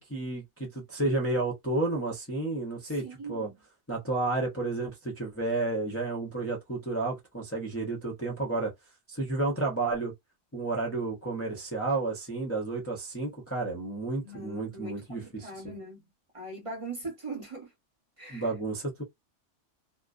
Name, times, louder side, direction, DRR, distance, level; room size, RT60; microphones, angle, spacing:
voice 1, 0.0-3.5 3.9-8.7 9.1-10.1 10.5-15.7 18.3-19.0, right 2 dB, 15° left, 0.5 m, -31 dB
voice 2, 2.8-3.6 14.2-16.0 16.3-17.7 18.2-18.5, right 3 dB, 30° right, 0.8 m, -41 dB
2.5 x 2.1 x 2.3 m
omnidirectional pair, 1.2 m